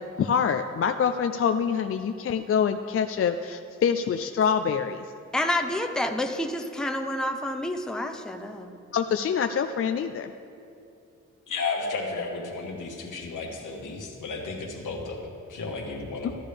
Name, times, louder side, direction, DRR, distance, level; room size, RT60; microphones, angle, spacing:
voice 1, 0.2-5.1 8.9-10.3, left 7 dB, 50° left, 8 dB, 0.4 m, -25 dB
voice 2, 5.3-8.7, left 1 dB, ahead, 4 dB, 0.6 m, -29 dB
voice 3, 11.5-16.4, left 3 dB, 90° left, 0 dB, 1.5 m, -33 dB
14.0 x 10.0 x 3.4 m, 2.6 s
cardioid pair, 85°, 30 cm